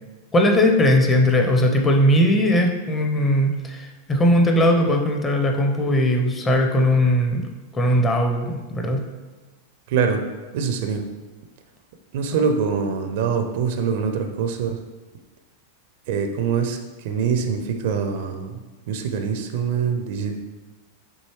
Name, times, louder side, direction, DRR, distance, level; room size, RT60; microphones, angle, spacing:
voice 1, 0.3-7.4 7.7-9.0, left 1 dB, 20° left, 2 dB, 0.6 m, -19 dB
voice 2, 9.9-10.2 10.5-11.0 12.1-14.8 16.1-18.6 18.9-20.4, right 6 dB, 50° right, 5 dB, 0.4 m, -24 dB
6.2 x 2.7 x 3.1 m, 1.3 s
figure-of-eight pair, 90°, 0 cm